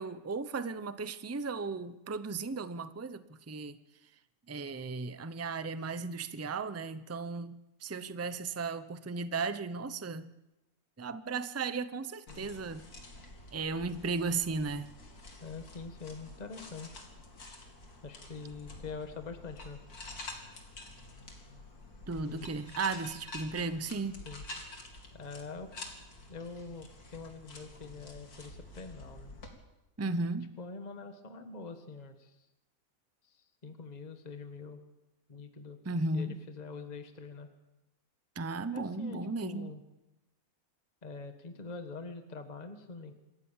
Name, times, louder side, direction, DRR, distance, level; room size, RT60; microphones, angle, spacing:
voice 1, 0.0-3.8 4.5-10.3 11.0-12.8 13.5-14.9 22.1-24.2 30.0-30.5 35.8-36.4 38.4-39.7, right 4 dB, 20° right, 13 dB, 0.4 m, -35 dB
sound 1, 12.3-29.5, left 2 dB, 85° left, 3.1 m, -48 dB
voice 2, 15.4-17.0 18.0-19.8 22.3-22.5 24.2-24.4 25.1-25.7 26.3-29.3 30.6-32.5 33.2-34.8 35.3-35.8 36.1-37.5 38.7-39.8 41.0-43.1, left 4 dB, 30° left, 7 dB, 1.5 m, -44 dB
26.5 x 14.5 x 7.3 m, 0.98 s
omnidirectional pair, 1.6 m